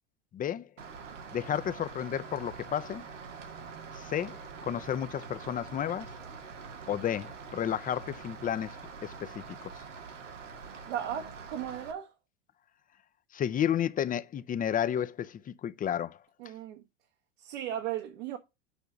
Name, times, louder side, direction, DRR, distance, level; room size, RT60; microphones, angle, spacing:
voice 1, 0.3-0.7 1.3-3.0 3.9-6.1 6.9-8.8 9.0-9.7 13.3-16.2, left 9 dB, 25° left, 0.6 m, -32 dB
Rain, 0.8-11.9, right 5 dB, 90° right, 1.7 m, -45 dB
voice 2, 10.8-12.1 16.4-16.8 17.4-18.4, right 10 dB, 70° right, 1.5 m, -36 dB
7.1 x 5.0 x 6.9 m
hypercardioid pair, 90°, 36 cm